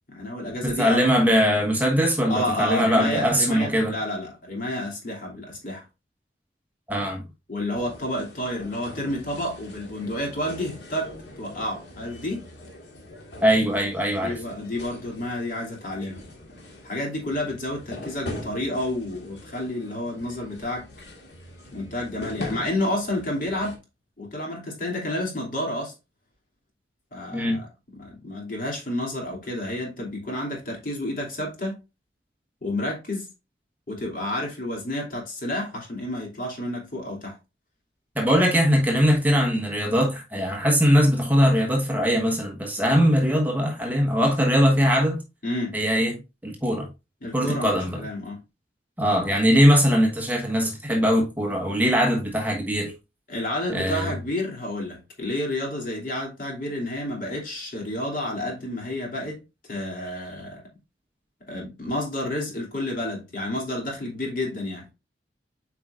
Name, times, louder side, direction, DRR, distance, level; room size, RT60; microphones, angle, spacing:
voice 1, 0.1-1.1 2.3-5.8 7.5-12.5 14.2-16.2 16.8-20.9 21.7-23.8 24.2-25.9 27.1-27.7 27.9-31.8 32.6-33.3 33.9-37.4 45.4-45.8 47.2-48.4 53.3-59.4 59.7-60.6 61.5-64.9, left 1 dB, 55° left, 2.8 m, -30 dB
voice 2, 0.6-3.9 6.9-7.2 13.4-14.4 27.3-27.6 38.1-45.2 45.7-46.9 47.3-48.0 49.0-52.9 53.7-54.2, equal, 10° right, 1.3 m, -21 dB
sound 1, 7.7-23.8, left 1 dB, 80° left, 1.8 m, -42 dB
8.0 x 4.7 x 2.5 m
head